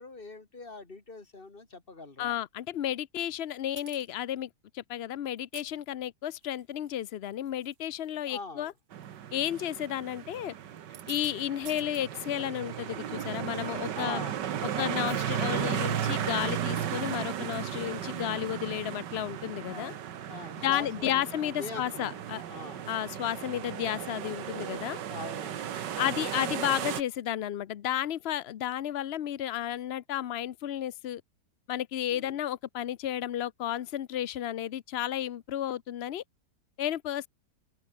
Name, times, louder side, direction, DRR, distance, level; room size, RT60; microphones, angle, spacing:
voice 1, 0.0-2.4 8.3-8.7 13.9-14.4 14.7-14.9 19.7-22.2 22.5-22.9 25.1-25.7 32.1-32.4, left 3 dB, 30° left, 2.6 m, -43 dB
voice 2, 2.2-8.7 9.3-10.5 11.1-14.2 14.8-19.9 20.6-22.4 22.9-25.0 26.0-31.2 31.7-36.2 36.8-37.3, left 11 dB, 70° left, 0.6 m, -32 dB
sound 1, 3.8-4.1 5.4-5.7 6.4-6.9 7.3-7.7 8.0-8.2 9.0-9.2 10.8-11.3 11.6-12.0, right 12 dB, 65° right, 1.3 m, -48 dB
sound 2, 8.9-27.0, right 10 dB, 80° right, 1.8 m, -35 dB
omnidirectional pair, 1.8 m